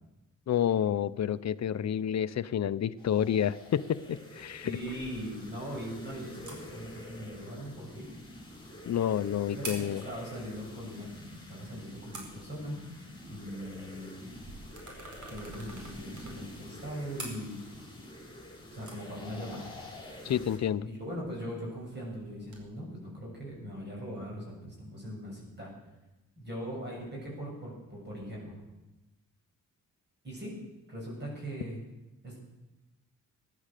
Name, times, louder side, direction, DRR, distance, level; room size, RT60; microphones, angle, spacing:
voice 1, 0.5-4.7 8.9-10.0 20.2-20.9, left 9 dB, 55° left, 16 dB, 0.7 m, -29 dB
sound 1, 3.0-20.6, left 1 dB, 15° left, 5.4 m, -48 dB
voice 2, 4.6-8.2 9.5-11.1 11.5-13.0 13.3-14.3 15.3-17.6 18.7-19.7 20.8-25.7 26.4-28.5 30.2-30.6 30.9-31.8 32.2-32.4, equal, 30° right, -3 dB, 6.8 m, -40 dB
sound 2, 4.7-22.6, right 2 dB, 60° right, 4.7 m, -50 dB
16.0 x 11.5 x 6.7 m, 1.0 s
cardioid pair, 110°, 33 cm